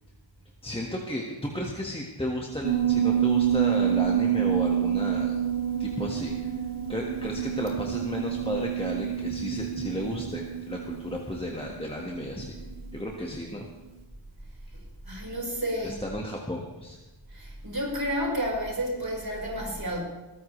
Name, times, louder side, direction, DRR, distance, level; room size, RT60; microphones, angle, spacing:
voice 1, 0.6-5.4 5.8-6.6 6.9-12.5 12.9-13.7 15.8-17.0, left 1 dB, 10° left, -2 dB, 1.7 m, -33 dB
Piano, 2.6-13.4, right 9 dB, 80° right, 2.0 m, -28 dB
voice 2, 14.7-16.0 17.3-20.0, equal, 50° right, -3 dB, 5.2 m, -31 dB
21.5 x 14.0 x 3.3 m, 1.1 s
wide cardioid pair, 60°, 47 cm